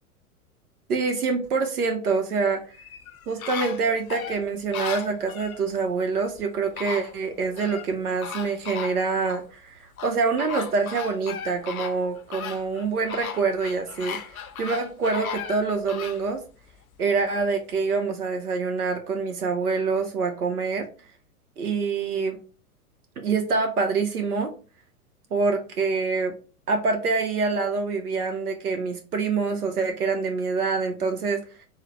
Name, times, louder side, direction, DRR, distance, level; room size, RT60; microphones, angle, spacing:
voice 1, 0.9-2.6 3.3-16.4 17.0-20.9 21.6-22.4 23.2-24.5 25.3-26.3 26.7-31.4, right 4 dB, 75° right, 5 dB, 0.7 m, -26 dB
sound 1, 2.7-5.6 6.4-6.5 6.8-7.9 8.2-9.4 10.0-16.2 16.7-16.8, left 7 dB, 65° left, 0.6 m, -36 dB
4.0 x 2.0 x 3.0 m, 0.37 s
figure-of-eight pair, 100°, 46 cm